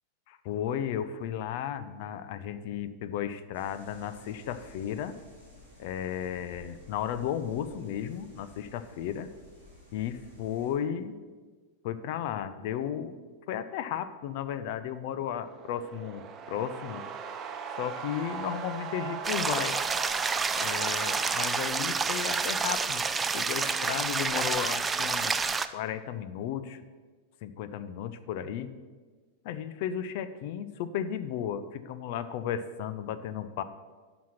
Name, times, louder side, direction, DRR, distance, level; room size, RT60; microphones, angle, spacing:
voice 1, 0.3-5.1 5.8-9.3 9.9-11.2 11.8-13.1 13.5-17.0 17.8-19.8 20.6-23.0 23.3-26.8 27.4-28.7 29.4-33.6, left 9 dB, 50° left, 12 dB, 0.6 m, -34 dB
sound 1, 3.5-10.7, left 1 dB, 85° left, 3.6 m, -54 dB
sound 2, 15.3-22.4, right 6 dB, 30° right, 0.9 m, -39 dB
sound 3, 19.2-25.7, right 4 dB, 15° right, 0.4 m, -29 dB
11.0 x 6.0 x 5.8 m, 1.4 s
figure-of-eight pair, 90°, 0 cm